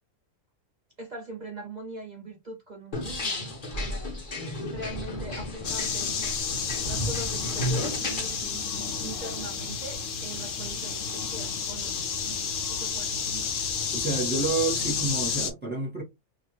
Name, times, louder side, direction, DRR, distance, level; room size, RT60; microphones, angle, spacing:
voice 1, 1.0-4.2 4.6-6.3 6.9-13.5, right 2 dB, 55° right, 0.4 m, -42 dB
sound 1, 2.9-8.4, left 1 dB, 40° left, 1.1 m, -33 dB
sound 2, 5.6-15.5, left 6 dB, 65° left, 1.0 m, -31 dB
voice 2, 13.9-16.0, right 3 dB, 5° right, 1.3 m, -29 dB
2.8 x 2.4 x 3.1 m
omnidirectional pair, 1.5 m